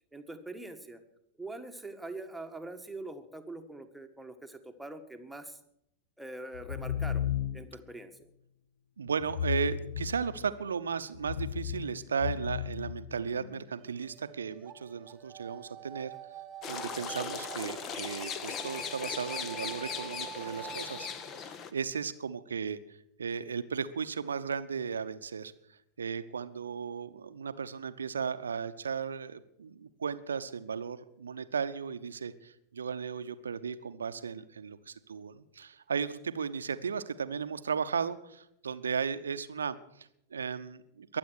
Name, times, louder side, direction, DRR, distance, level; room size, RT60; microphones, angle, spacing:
voice 1, 0.1-1.0 1.4-5.6 6.2-7.3 7.5-8.1, right 2 dB, 5° right, 5 dB, 1.5 m, -43 dB
sound 1, 6.5-7.8 9.2-10.6 11.1-13.6, left 9 dB, 60° left, 0.7 m, -35 dB
voice 2, 9.0-16.1 16.7-22.8 23.2-25.5 26.0-41.2, right 6 dB, 70° right, 12 dB, 0.8 m, -35 dB
sound 2, 13.8-21.4, right 11 dB, 30° right, 0.9 m, -47 dB
sound 3, 16.6-21.7, left 7 dB, 30° left, 1.1 m, -39 dB
22.0 x 8.0 x 6.4 m, 0.78 s
figure-of-eight pair, 90°, 0 cm